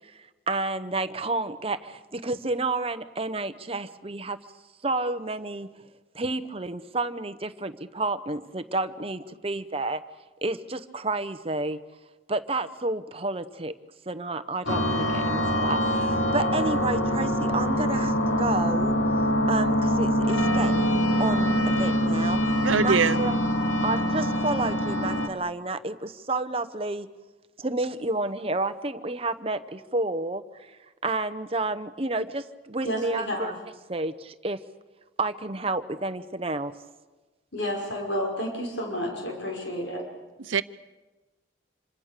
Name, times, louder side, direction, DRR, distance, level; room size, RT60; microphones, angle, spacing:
voice 1, 0.1-4.4 4.8-5.7 6.1-10.0 10.4-11.8 12.3-13.8 14.1-19.0 19.5-23.4 23.8-27.1 27.6-33.5 33.9-34.6 35.2-36.7, right 2 dB, 30° right, 11 dB, 1.0 m, -30 dB
sound 1, 14.7-25.3, equal, 85° left, 2.1 m, -24 dB
voice 2, 22.6-23.2 40.4-40.6, right 5 dB, 85° right, 14 dB, 0.8 m, -22 dB
voice 3, 32.8-33.5 37.5-40.0, equal, 65° left, 1 dB, 5.6 m, -30 dB
27.0 x 25.5 x 6.8 m, 1.2 s
head